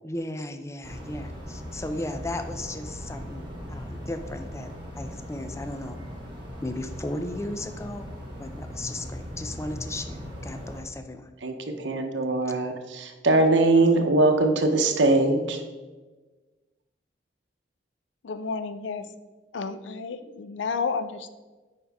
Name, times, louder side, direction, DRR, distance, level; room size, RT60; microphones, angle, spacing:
voice 1, 0.0-6.0 6.6-8.1 8.4-11.3, left 1 dB, 15° left, 7 dB, 0.5 m, -35 dB
sound 1, 0.8-10.8, equal, 25° right, 1.7 m, -39 dB
voice 2, 11.4-15.6, right 2 dB, 85° right, 5 dB, 0.9 m, -22 dB
voice 3, 18.2-19.1 19.5-21.3, left 4 dB, 85° left, 11 dB, 0.5 m, -31 dB
8.7 x 5.0 x 3.5 m, 1.2 s
head